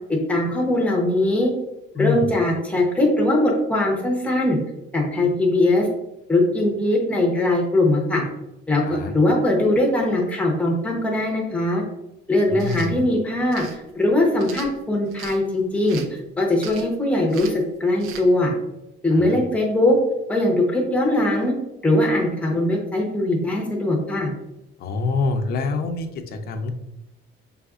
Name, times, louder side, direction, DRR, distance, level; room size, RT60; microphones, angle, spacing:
voice 1, 0.1-1.5 1.9-4.6 4.9-5.9 6.3-8.2 8.7-11.8 12.3-16.0 16.4-18.5 19.0-20.0 20.3-21.5 21.8-24.3, left 1 dB, 5° left, -1 dB, 0.7 m, -21 dB
voice 2, 2.0-2.3 8.9-9.1 12.5-13.0 19.1-19.4 24.8-26.7, left 4 dB, 50° left, 6 dB, 0.5 m, -26 dB
sound 1, 12.5-12.9 13.5-13.8 14.4-15.4 15.9-16.2 16.6-17.0 17.3-17.6 18.0-18.2, right 7 dB, 85° right, 0.6 m, -39 dB
4.9 x 3.4 x 2.4 m, 0.91 s
cardioid pair, 170°, 21 cm